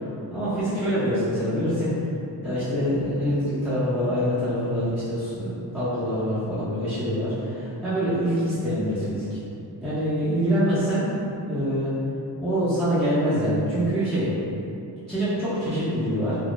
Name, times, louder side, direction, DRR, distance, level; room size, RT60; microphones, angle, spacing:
voice 1, 0.0-1.9 2.4-9.4 9.8-11.2 11.5-11.9 12.4-14.3 15.1-16.4, equal, ahead, -16 dB, 0.8 m, -25 dB
3.7 x 2.2 x 2.4 m, 2.7 s
cardioid pair, 95°, 44 cm